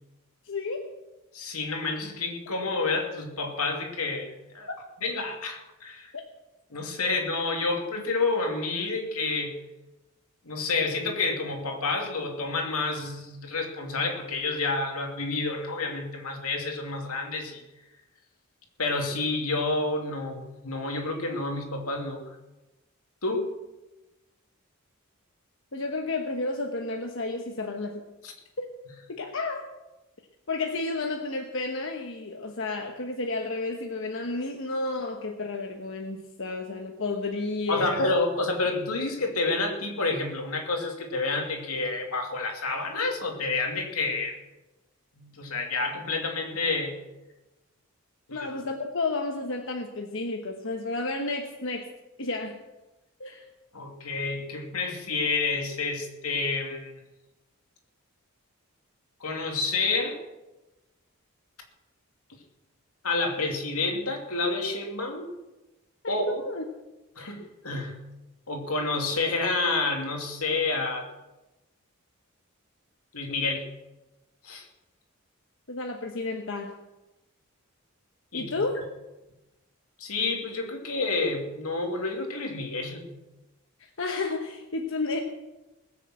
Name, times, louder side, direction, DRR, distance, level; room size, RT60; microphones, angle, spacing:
voice 1, 0.4-0.9 4.7-4.8 6.1-6.2 7.0-7.1 25.7-28.0 28.6-28.7 29.1-29.7 30.5-38.0 48.3-51.9 52.2-52.6 53.2-53.5 66.0-66.6 67.2-67.3 75.7-76.7 78.3-78.8 84.0-85.2, left 3 dB, 60° left, 3 dB, 1.2 m, -31 dB
voice 2, 1.3-4.7 5.0-6.1 6.7-9.6 10.4-17.6 18.8-22.3 23.2-23.5 28.2-28.3 37.7-44.4 45.2-47.0 48.3-48.5 53.7-56.9 59.2-60.2 63.0-65.3 66.1-66.3 67.2-68.0 68.5-71.1 73.1-73.7 74.4-74.7 78.3-78.7 80.0-83.1, left 3 dB, 85° left, 3 dB, 2.7 m, -29 dB
20.0 x 6.9 x 7.8 m, 1.0 s
head